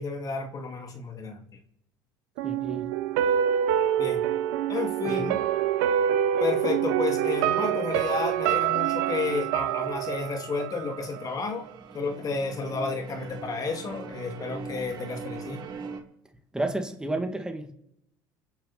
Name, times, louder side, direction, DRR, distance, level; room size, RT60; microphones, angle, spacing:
voice 1, 0.0-1.4 4.0-4.2 4.7-5.4 6.4-11.7 11.9-15.6, left 4 dB, 40° left, 5 dB, 2.4 m, -31 dB
voice 2, 2.4-2.9 5.0-5.3 16.5-17.7, right 2 dB, 10° right, 4 dB, 2.5 m, -31 dB
sound 1, 2.4-11.4 11.7-11.8, right 10 dB, 80° right, 1.5 m, -26 dB
sound 2, 10.7-16.0, right 5 dB, 45° right, 3.3 m, -41 dB
29.0 x 10.5 x 4.3 m, 0.82 s
supercardioid pair, 100°, 10 cm